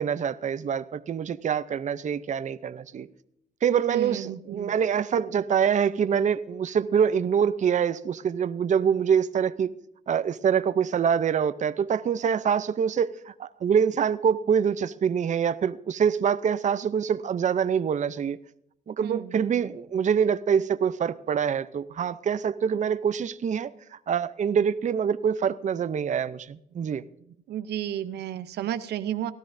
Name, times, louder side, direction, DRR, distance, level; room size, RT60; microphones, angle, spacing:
voice 1, 0.0-3.1 3.6-9.7 10.1-18.4 18.9-27.0, right 7 dB, 45° right, 0.5 m, -25 dB
voice 2, 3.9-4.7 19.0-19.3 27.5-29.3, right 11 dB, 85° right, 0.6 m, -32 dB
18.0 x 12.5 x 2.6 m
cardioid pair, 75°, 17 cm